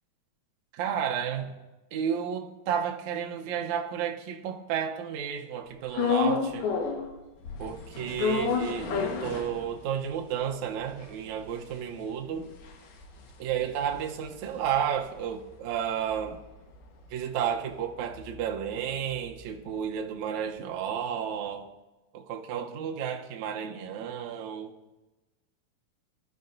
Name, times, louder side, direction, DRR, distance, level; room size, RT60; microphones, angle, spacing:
voice 1, 0.7-1.5 1.9-6.7 7.6-12.5 13.4-16.4 17.1-21.7 22.1-24.8, right 8 dB, 85° right, 1.6 m, -32 dB
sound 1, 5.9-7.1 7.4-10.0 10.4-10.5 10.7-15.2 15.5-19.6, left 5 dB, 70° left, 3.2 m, -32 dB
21.0 x 12.0 x 2.6 m
omnidirectional pair, 4.6 m